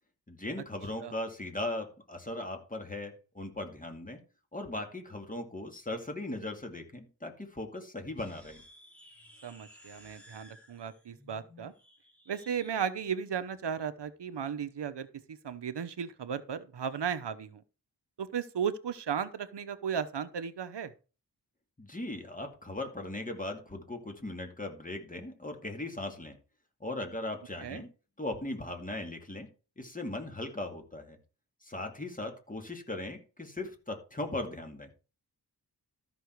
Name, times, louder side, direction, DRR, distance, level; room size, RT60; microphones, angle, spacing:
voice 1, 0.3-4.2 4.5-8.6 21.8-26.4 26.8-27.9 28.2-29.5 29.8-31.2 31.6-34.9, left 2 dB, 20° left, 4 dB, 2.4 m, -38 dB
sound 1, 8.1-12.8, equal, 5° left, 3.7 m, -57 dB
voice 2, 9.4-11.7 12.3-17.6 18.2-20.9 27.6-27.8, right 7 dB, 80° right, 12 dB, 1.0 m, -35 dB
13.0 x 6.1 x 4.6 m, 0.33 s
wide cardioid pair, 110°, 41 cm